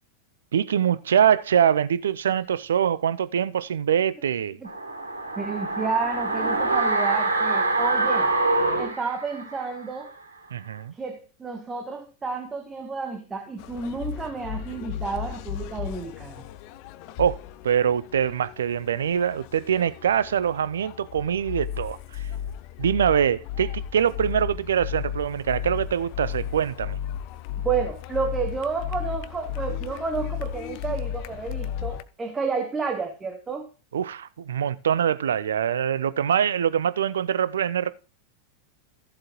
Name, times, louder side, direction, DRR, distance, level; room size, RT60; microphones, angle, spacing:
voice 1, 0.5-4.6 10.5-10.9 17.2-17.4 17.6-22.3 22.8-27.0 33.9-37.9, right 8 dB, 65° right, 0.5 m, -24 dB
sound 1, 4.6-9.8 10.1-10.2, right 2 dB, 85° right, 3.0 m, -25 dB
voice 2, 5.4-8.3 8.8-10.1 10.9-16.4 27.6-33.7, right 5 dB, 15° right, 1.2 m, -31 dB
sound 2, 13.6-32.0, left 9 dB, 45° left, 0.7 m, -34 dB
14.5 x 7.5 x 3.1 m
figure-of-eight pair, 90°, 0 cm